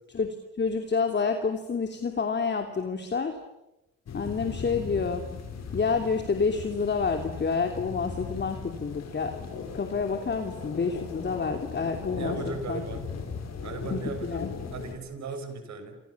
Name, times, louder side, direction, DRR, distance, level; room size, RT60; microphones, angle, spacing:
voice 1, 0.1-3.4 4.1-5.2 5.7-9.5 9.7-12.8 13.9-14.5, left 5 dB, 35° left, 5 dB, 3.0 m, -29 dB
sound 1, 4.1-14.9, left 5 dB, 60° left, 7.7 m, -38 dB
voice 2, 12.1-13.1 13.6-14.4 14.7-15.9, right 4 dB, 65° right, 8 dB, 6.4 m, -37 dB
29.5 x 28.0 x 7.3 m, 0.92 s
cardioid pair, 90°, 30 cm